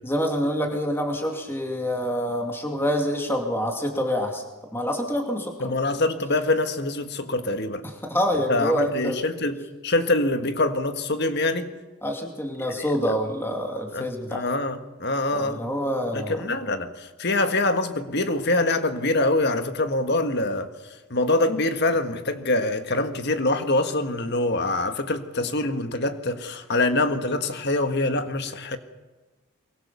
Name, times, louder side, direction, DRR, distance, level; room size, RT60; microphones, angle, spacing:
voice 1, 0.0-4.4 4.7-5.7 7.8-9.2 12.0-14.4 15.3-16.4, equal, 10° left, 2.5 m, -26 dB
voice 2, 5.6-7.8 8.5-11.7 12.8-12.9 13.9-15.6 16.1-20.7 21.1-28.8, left 2 dB, 50° left, 1.6 m, -25 dB
24.0 x 21.5 x 7.0 m
head